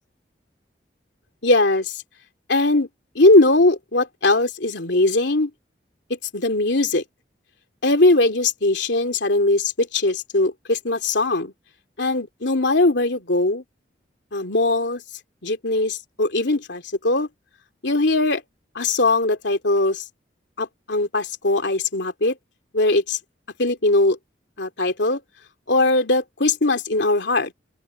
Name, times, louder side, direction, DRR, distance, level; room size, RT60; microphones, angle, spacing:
voice 1, 1.4-2.0 2.5-2.9 3.1-5.5 6.1-7.0 7.8-11.5 12.0-13.6 14.3-15.0 15.4-17.3 17.8-18.4 18.7-20.0 20.6-22.4 22.7-23.2 23.6-24.2 24.6-25.2 25.7-27.5, left 2 dB, 80° left, 2.8 m, -20 dB
open air
head